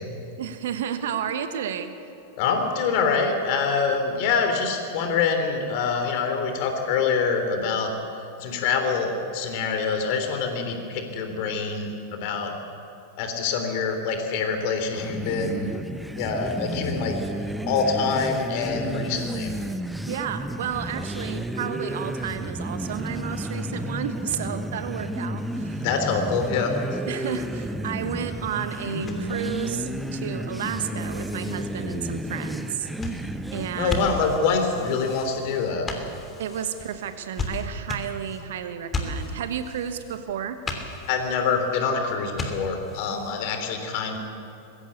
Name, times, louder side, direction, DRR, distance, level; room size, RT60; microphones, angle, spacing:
voice 1, 0.4-1.9 20.1-25.8 27.1-32.9 33.5-34.2 36.4-40.6, right 8 dB, 60° right, 9 dB, 1.4 m, -32 dB
voice 2, 2.4-7.9 8.4-12.5 13.2-15.7 16.2-17.2 17.7-19.5 25.8-27.0 33.7-35.9 41.1-44.2, left 5 dB, 45° left, 5 dB, 3.3 m, -25 dB
sound 1, 14.9-34.4, right 1 dB, 5° right, 0.8 m, -32 dB
sound 2, 25.4-43.6, left 2 dB, 20° left, 3.0 m, -38 dB
Bass guitar, 28.9-33.0, left 6 dB, 85° left, 1.3 m, -42 dB
21.5 x 16.0 x 8.3 m, 2.6 s
figure-of-eight pair, 90°, 0 cm